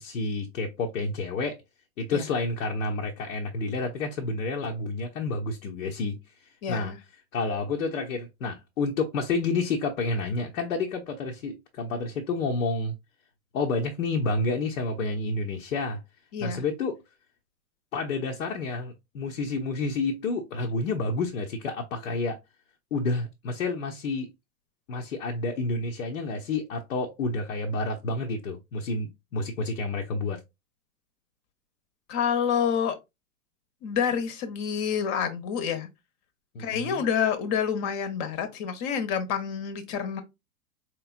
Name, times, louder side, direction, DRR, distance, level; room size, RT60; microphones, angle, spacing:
voice 1, 0.0-1.6 2.0-6.2 6.7-6.9 7.3-12.9 13.5-16.0 16.4-17.0 17.9-22.4 22.9-24.3 24.9-30.4 36.5-37.0, left 3 dB, 65° left, 0.9 m, -29 dB
voice 2, 6.6-7.0 16.3-16.6 32.1-33.0 33.8-35.9 36.6-40.2, left 7 dB, 40° left, 1.0 m, -28 dB
4.5 x 3.2 x 2.5 m
figure-of-eight pair, 100°, 44 cm